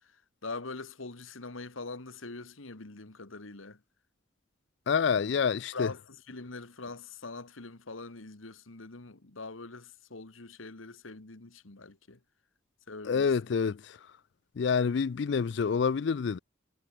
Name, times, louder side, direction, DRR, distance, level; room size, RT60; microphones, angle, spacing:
voice 1, 0.4-3.8 5.7-12.2 12.9-13.3, left 3 dB, 90° left, 1.8 m, -43 dB
voice 2, 4.9-5.9 13.0-14.0 14.6-16.4, left 6 dB, 60° left, 0.4 m, -27 dB
head